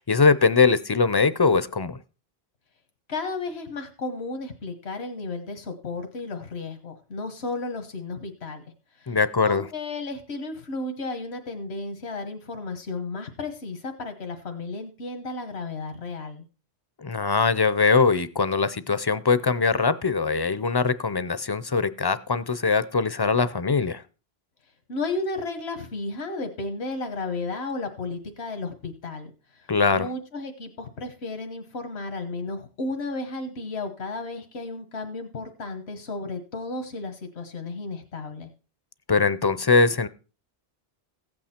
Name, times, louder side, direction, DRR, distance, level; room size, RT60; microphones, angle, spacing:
voice 1, 0.0-2.0 9.1-9.7 17.0-24.0 29.7-30.1 39.1-40.1, left 4 dB, 30° left, 0.5 m, -22 dB
voice 2, 3.1-8.6 9.0-9.2 9.4-16.4 24.9-38.5, left 3 dB, 90° left, 1.5 m, -33 dB
15.0 x 8.8 x 4.4 m
omnidirectional pair, 1.1 m